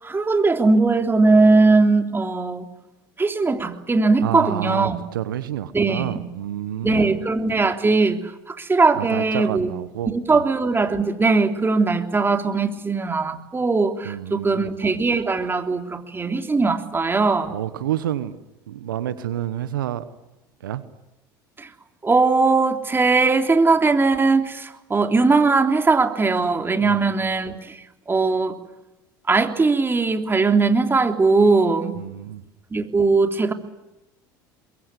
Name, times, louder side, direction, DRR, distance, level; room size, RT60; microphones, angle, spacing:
voice 1, 0.0-2.7 3.2-5.0 5.7-6.2 6.8-9.7 10.1-17.5 21.6-21.7 22.0-27.8 28.1-28.5 29.3-31.9 32.7-33.5, right 3 dB, 20° right, 5 dB, 3.5 m, -19 dB
voice 2, 4.2-7.2 8.9-10.4 14.0-14.8 17.5-18.4 18.7-20.1 20.6-20.8 26.8-27.2 32.0-32.4, right 11 dB, 85° right, 13 dB, 1.2 m, -29 dB
23.5 x 22.5 x 9.9 m, 0.97 s
hypercardioid pair, 75°, 11 cm